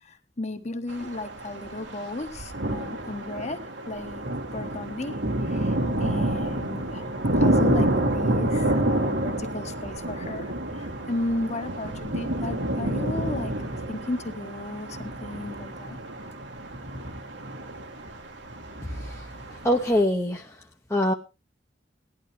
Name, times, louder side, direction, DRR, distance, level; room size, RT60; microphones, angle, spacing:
voice 1, 0.0-4.2 4.5-5.2 5.5-5.7 6.0-13.5 13.9-16.0, left 2 dB, 40° left, 8 dB, 1.3 m, -34 dB
sound 1, 0.9-20.0, right 1 dB, 80° right, 2.1 m, -29 dB
voice 2, 19.5-20.5 20.9-21.1, left 1 dB, 15° left, 1 dB, 0.9 m, -24 dB
17.5 x 11.5 x 3.2 m, 0.27 s
head